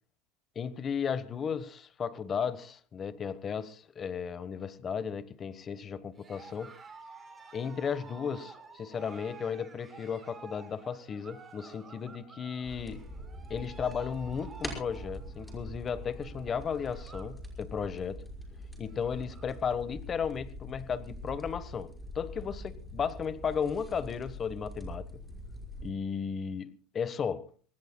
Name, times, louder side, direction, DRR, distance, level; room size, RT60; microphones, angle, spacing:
voice 1, 0.5-6.7 7.5-13.1 13.5-18.2 18.8-25.2 25.8-27.5, left 6 dB, 30° left, 1.2 m, -35 dB
Cheering, 6.1-17.4 17.7-18.1 18.5-18.6 18.8-19.6, right 4 dB, 20° right, 5.0 m, -52 dB
sound 1, 12.6-25.9, equal, 5° left, 5.7 m, -44 dB
25.0 x 19.5 x 2.3 m
supercardioid pair, 125°, 0 cm